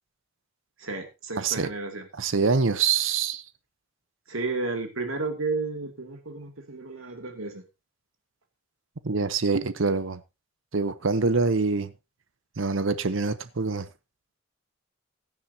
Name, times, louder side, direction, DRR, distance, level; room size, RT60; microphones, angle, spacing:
voice 1, 0.8-2.1 4.3-7.6, right 3 dB, 85° right, 2.4 m, -32 dB
voice 2, 1.4-1.7 2.2-3.4 9.0-10.2 10.7-11.9 12.6-13.9, right 4 dB, 70° right, 0.8 m, -25 dB
16.0 x 10.5 x 2.8 m
head